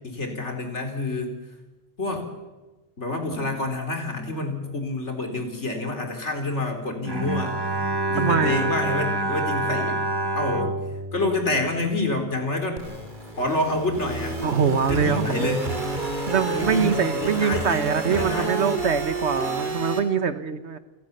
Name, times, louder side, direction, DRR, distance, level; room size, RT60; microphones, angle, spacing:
voice 1, 0.0-1.3 2.0-2.3 3.0-7.6 8.1-10.0 10.4-10.7 11.1-12.8 13.4-14.4 14.9-15.7 16.4-18.7, left 2 dB, 85° left, 5 dB, 4.0 m, -28 dB
Bowed string instrument, 7.0-12.4, right 2 dB, 20° right, 1.3 m, -28 dB
voice 2, 8.2-8.7 14.4-15.6 16.3-20.8, right 6 dB, 75° right, 12 dB, 1.5 m, -24 dB
sound 1, 12.8-20.0, right 2 dB, 45° right, 3.0 m, -30 dB
29.5 x 17.0 x 6.8 m, 1.2 s
omnidirectional pair, 1.2 m